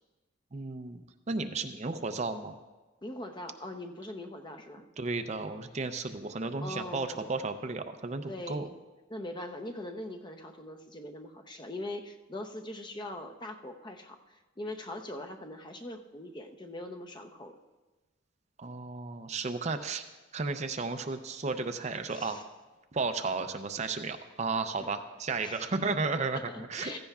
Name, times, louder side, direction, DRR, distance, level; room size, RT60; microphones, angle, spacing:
voice 1, 0.5-2.6 5.0-8.7 18.6-20.0 20.3-22.4 22.9-26.4 26.7-27.0, right 3 dB, 35° right, 8 dB, 0.5 m, -33 dB
voice 2, 3.0-4.9 6.6-7.3 8.3-8.7 9.1-17.5 22.1-22.4 24.8-24.9 25.4-25.7 26.3-27.0, left 1 dB, 25° left, 6 dB, 0.7 m, -41 dB
15.5 x 15.0 x 2.4 m, 1.2 s
head